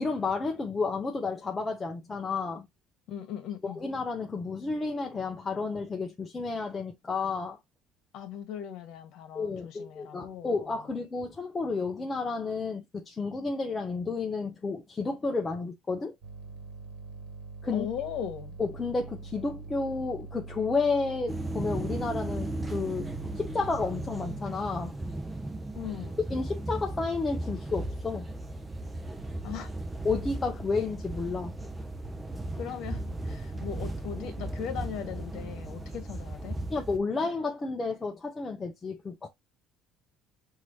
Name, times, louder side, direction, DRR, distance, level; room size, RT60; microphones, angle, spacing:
voice 1, 0.0-2.7 3.6-7.6 9.3-16.1 17.6-17.9 18.6-25.0 26.3-28.2 30.0-31.6 33.5-33.6 36.7-39.3, left 4 dB, 20° left, 0.7 m, -31 dB
voice 2, 3.1-3.9 8.1-10.9 17.7-18.6 25.7-26.2 29.4-29.7 32.6-36.6, left 9 dB, 60° left, 1.4 m, -38 dB
sound 1, 16.2-24.4, right 4 dB, 75° right, 1.4 m, -43 dB
sound 2, 21.3-37.0, right 2 dB, 10° right, 0.7 m, -36 dB
5.8 x 2.8 x 3.2 m
cardioid pair, 130°, 0 cm